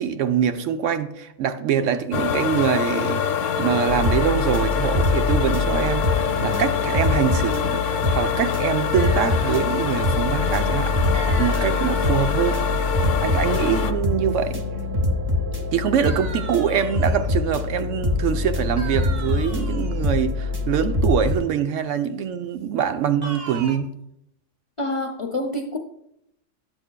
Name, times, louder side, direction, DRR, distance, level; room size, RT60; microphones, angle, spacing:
voice 1, 0.0-3.3 3.6-12.6 13.2-14.6 15.7-23.9, right 8 dB, 85° right, 1.0 m, -24 dB
sound 1, 2.1-13.9, left 7 dB, 90° left, 1.0 m, -25 dB
sound 2, 3.9-21.3, left 2 dB, 25° right, 0.5 m, -25 dB
sound 3, 8.9-10.0 11.1-12.4 16.0-17.4 18.8-20.0 23.2-23.8, right 4 dB, 55° right, 1.0 m, -38 dB
voice 2, 24.8-25.8, left 1 dB, 45° left, 0.4 m, -27 dB
11.0 x 7.9 x 2.2 m
omnidirectional pair, 1.3 m